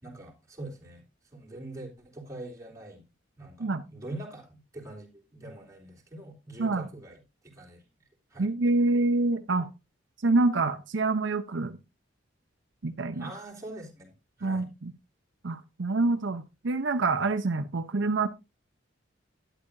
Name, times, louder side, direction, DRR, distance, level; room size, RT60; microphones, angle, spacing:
voice 1, 0.0-1.0 1.3-3.0 3.4-7.8 8.3-8.5 13.1-14.7, right 2 dB, 15° right, -2 dB, 3.5 m, -44 dB
voice 2, 8.4-9.7 10.2-11.8 12.8-13.3 14.4-14.9 15.4-18.3, right 3 dB, 70° right, 8 dB, 0.7 m, -26 dB
12.0 x 10.5 x 2.6 m, 0.25 s
head